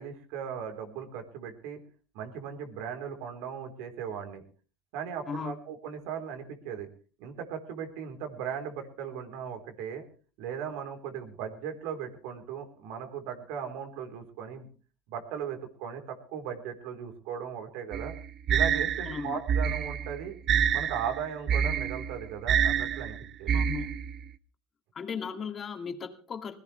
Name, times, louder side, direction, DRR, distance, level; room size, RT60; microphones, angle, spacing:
voice 1, 0.0-1.8 2.1-4.4 4.9-6.9 7.2-10.0 10.4-14.7 15.1-18.1 18.5-20.3 20.7-23.6, right 8 dB, 70° right, 5 dB, 4.1 m, -37 dB
sound 1, 17.9-24.2, right 8 dB, 45° right, 1.1 m, -27 dB
voice 2, 19.1-19.4 23.5-24.0 24.9-26.6, left 6 dB, 35° left, 5 dB, 2.5 m, -36 dB
21.0 x 17.0 x 3.4 m, 0.38 s
supercardioid pair, 95°, 0 cm